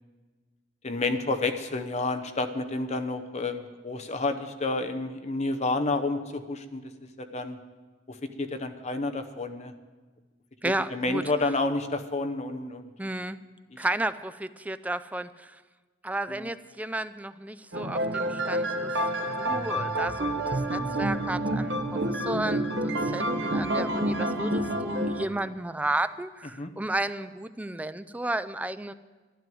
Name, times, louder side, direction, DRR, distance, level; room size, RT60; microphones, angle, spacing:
voice 1, 0.8-6.8 7.2-7.6 8.1-9.7 10.6-12.9 16.3-16.5 26.6-26.7, left 3 dB, 40° left, 8 dB, 0.9 m, -30 dB
voice 2, 10.6-11.2 13.0-13.4 13.8-15.6 16.0-22.7 23.0-28.9, right 2 dB, 10° right, 12 dB, 0.4 m, -33 dB
sound 1, 17.7-25.3, right 1 dB, 75° right, 1.1 m, -28 dB
12.5 x 11.0 x 7.7 m, 1.3 s
head